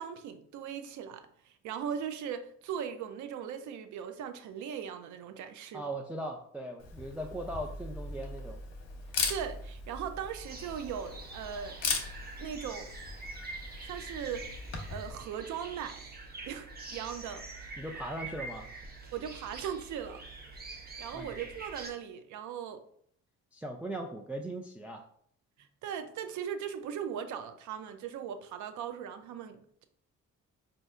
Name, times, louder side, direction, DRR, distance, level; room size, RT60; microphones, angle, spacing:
voice 1, 0.0-5.8 9.3-11.8 12.4-12.9 13.8-14.5 14.9-16.0 16.4-17.4 19.1-20.2 21.0-22.8 25.8-29.9, right 8 dB, 75° right, 0.5 m, -39 dB
voice 2, 5.7-8.6 17.8-18.7 21.1-21.3 23.5-25.0, right 1 dB, 5° right, 0.3 m, -39 dB
Camera, 6.8-15.1, left 4 dB, 60° left, 0.8 m, -39 dB
sound 1, 10.4-21.9, right 3 dB, 30° right, 0.7 m, -45 dB
4.2 x 2.6 x 2.4 m
cardioid pair, 90°, 30 cm